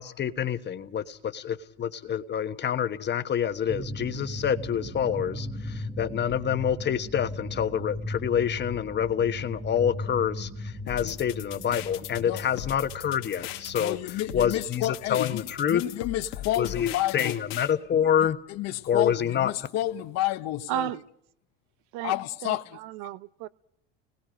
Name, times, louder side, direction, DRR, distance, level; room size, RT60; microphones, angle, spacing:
voice 1, 0.0-15.8 16.6-18.4 18.9-19.5, left 9 dB, 35° left, 1.3 m, -27 dB
sound 1, 3.7-15.7, left 1 dB, 15° right, 1.5 m, -38 dB
sound 2, 10.9-17.7, left 13 dB, 80° left, 1.8 m, -39 dB
voice 2, 13.8-17.3 17.9-18.0 18.5-20.9 22.0-22.8, left 14 dB, 60° left, 1.2 m, -30 dB
voice 3, 20.7-21.0 21.9-22.1 22.4-23.5, right 14 dB, 70° right, 0.7 m, -33 dB
30.0 x 20.0 x 5.2 m
supercardioid pair, 100°, 30 cm